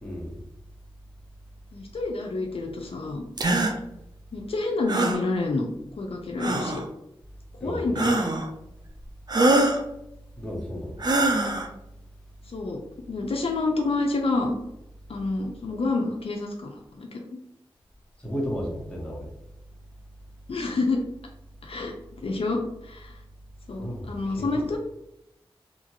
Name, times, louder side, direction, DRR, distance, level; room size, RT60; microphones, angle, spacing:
voice 1, 0.0-0.4 7.6-8.0 10.4-11.0 18.2-19.3 23.8-24.6, equal, 10° left, -3 dB, 1.2 m, -33 dB
voice 2, 1.7-3.3 4.3-5.7 6.0-6.8 7.6-8.2 12.5-12.8 13.1-14.6 15.1-17.4 20.5-21.0 21.6-23.2 23.7-24.8, left 3 dB, 70° left, 1 dB, 0.5 m, -28 dB
sound 1, 3.4-3.7 4.9-5.2 6.4-6.8 8.0-8.5 9.3-9.8 11.0-11.7, right 2 dB, 45° right, 0.5 m, -23 dB
2.9 x 2.5 x 2.8 m, 0.82 s
cardioid pair, 50°, 10 cm